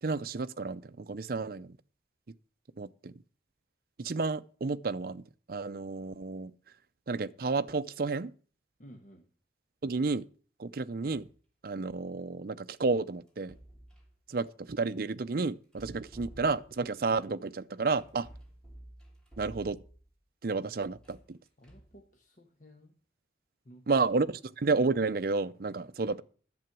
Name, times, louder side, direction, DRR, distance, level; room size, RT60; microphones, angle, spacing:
voice 1, 0.0-1.8 2.8-3.1 4.0-5.2 5.5-6.5 7.1-8.3 9.8-10.2 10.6-11.3 11.6-13.6 14.3-18.3 19.4-19.8 20.4-21.4 23.9-26.2, right 4 dB, 50° right, 0.5 m, -31 dB
voice 2, 8.8-9.2 21.6-22.9 23.6-23.8 26.1-26.2, equal, 45° left, 1.4 m, -54 dB
sound 1, 11.0-11.4 13.3-14.2 15.6-16.9 17.9-20.1 20.9-22.0, right 1 dB, 5° left, 2.9 m, -52 dB
11.0 x 7.7 x 6.0 m
head